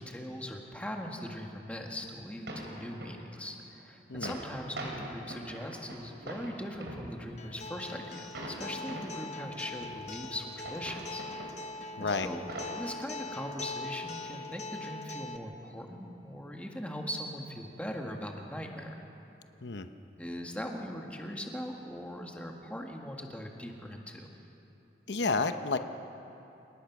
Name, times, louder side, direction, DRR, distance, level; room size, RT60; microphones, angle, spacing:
voice 1, 0.0-11.2 12.0-12.5 12.7-19.0 20.2-24.3, equal, 10° left, 1 dB, 1.8 m, -40 dB
sound 1, 2.0-2.1 2.5-3.3 3.8-3.9 4.1-7.6 8.3-9.3 9.8-11.8 12.2-12.8, right 1 dB, 85° right, 3.9 m, -43 dB
Acoustic guitar, 7.4-15.4, left 3 dB, 40° left, 1.0 m, -42 dB
voice 2, 25.1-25.8, left 4 dB, 90° left, 8 dB, 0.9 m, -30 dB
29.5 x 18.5 x 6.1 m, 2.9 s
head